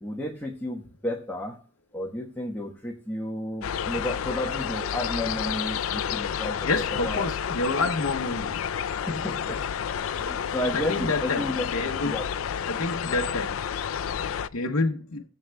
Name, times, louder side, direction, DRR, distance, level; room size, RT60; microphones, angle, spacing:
voice 1, 0.0-1.6 1.9-6.7 7.0-7.2 9.1-9.6 10.1-11.6 12.0-12.3, left 1 dB, 10° left, 1.1 m, -32 dB
sound 1, 3.6-14.5, left 8 dB, 70° left, 0.4 m, -30 dB
voice 2, 6.6-8.6 10.7-11.4 11.7-12.2 12.7-13.6 14.5-15.2, left 3 dB, 90° left, 0.8 m, -28 dB
16.5 x 7.8 x 2.2 m
head